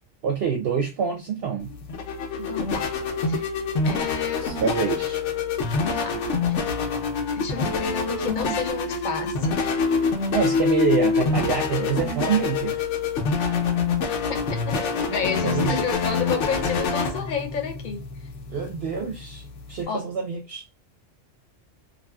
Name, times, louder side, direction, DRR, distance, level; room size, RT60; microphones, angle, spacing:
voice 1, 0.2-1.7 4.4-5.2 8.5-8.6 10.3-12.8 15.4-15.8 18.5-19.4 19.7-20.7, right 6 dB, 65° right, 0.8 m, -26 dB
sound 1, 1.6-19.8, left 4 dB, 85° left, 1.0 m, -26 dB
voice 2, 2.4-2.9 3.3-3.5 3.9-4.6 5.8-6.6 7.4-9.7 14.3-18.0 19.9-20.1, left 6 dB, 50° left, 0.7 m, -31 dB
2.7 x 2.5 x 2.2 m
omnidirectional pair, 1.2 m